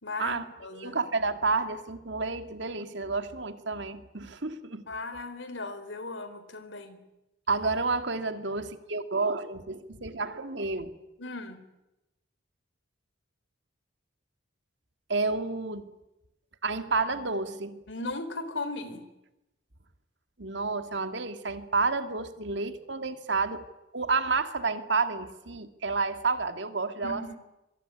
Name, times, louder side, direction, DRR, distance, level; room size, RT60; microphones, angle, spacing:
voice 1, 0.0-1.0 4.8-7.0 11.2-11.6 17.9-19.0 27.0-27.4, left 2 dB, 75° left, 11 dB, 3.6 m, -37 dB
voice 2, 0.7-4.8 7.5-10.9 15.1-15.9 16.6-17.8 20.4-23.6 23.9-27.4, right 4 dB, 65° right, 9 dB, 2.1 m, -30 dB
25.5 x 23.0 x 9.9 m, 0.95 s
head